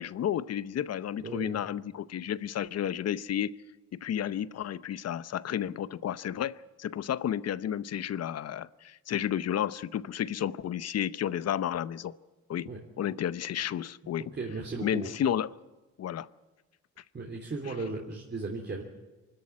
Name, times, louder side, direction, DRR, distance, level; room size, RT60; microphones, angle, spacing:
voice 1, 0.0-3.5 3.9-12.2 12.5-14.3 14.8-15.5 16.0-16.3, left 10 dB, 55° left, 0.8 m, -32 dB
voice 2, 1.2-1.6 12.6-12.8 14.3-15.1 17.1-18.8, right 3 dB, 35° right, 3.3 m, -36 dB
24.5 x 13.5 x 9.7 m
cardioid pair, 90°, 30 cm